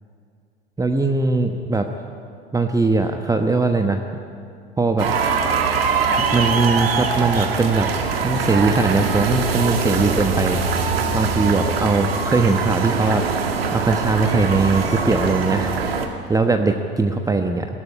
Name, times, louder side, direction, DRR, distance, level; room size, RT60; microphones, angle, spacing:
voice 1, 0.8-1.9 2.5-4.0 4.8-5.1 6.3-7.9 8.1-10.6 11.1-13.2 13.7-15.7 16.3-17.7, right 3 dB, 10° right, 5 dB, 1.2 m, -20 dB
sound 1, 5.0-16.1, right 5 dB, 75° right, 2.2 m, -22 dB
22.5 x 17.5 x 9.8 m, 2.4 s
figure-of-eight pair, 75°, 30 cm